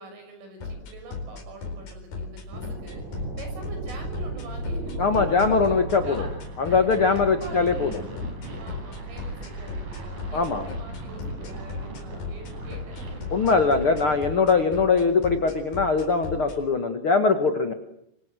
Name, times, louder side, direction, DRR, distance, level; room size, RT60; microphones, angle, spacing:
voice 1, 0.0-6.4 6.7-8.0 8.6-13.7 14.3-14.5, right 2 dB, 80° right, 5 dB, 9.5 m, -45 dB
sound 1, 0.6-16.6, left 4 dB, 50° left, 5.9 m, -35 dB
sound 2, 2.5-14.2, right 2 dB, 40° right, 5.9 m, -37 dB
voice 2, 5.0-6.2 6.6-8.0 10.3-10.6 13.3-17.7, left 4 dB, 80° left, 7 dB, 1.2 m, -22 dB
26.0 x 25.5 x 7.8 m, 0.76 s
omnidirectional pair, 5.6 m